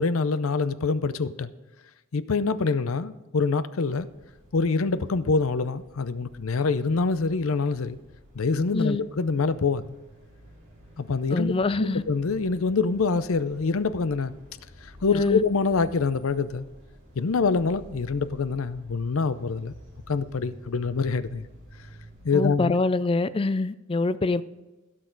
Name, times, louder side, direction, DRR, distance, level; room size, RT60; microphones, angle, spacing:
voice 1, 0.0-1.5 2.1-4.1 4.5-8.0 8.3-9.9 11.0-14.3 14.8-16.6 17.2-19.7 20.1-21.5 22.2-22.8, left 4 dB, 70° left, 0.6 m, -25 dB
sound 1, 3.9-22.3, equal, 35° right, 3.7 m, -50 dB
voice 2, 11.3-12.0 15.1-15.4 22.3-24.4, left 3 dB, 25° left, 0.4 m, -25 dB
16.5 x 6.3 x 3.9 m
head